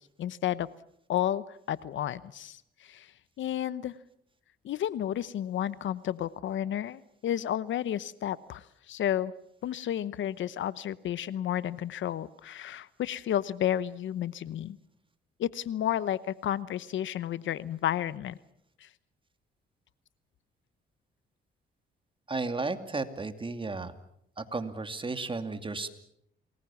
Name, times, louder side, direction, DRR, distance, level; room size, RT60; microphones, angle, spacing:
voice 1, 0.2-0.7 1.1-3.1 3.4-3.9 4.6-9.3 9.6-14.8 15.4-18.4 18.8-18.9, left 11 dB, 70° left, 17 dB, 0.9 m, -32 dB
voice 2, 22.3-23.9 24.4-25.9, right 3 dB, 25° right, 9 dB, 2.5 m, -33 dB
28.5 x 20.5 x 7.2 m, 0.75 s
cardioid pair, 80°, 21 cm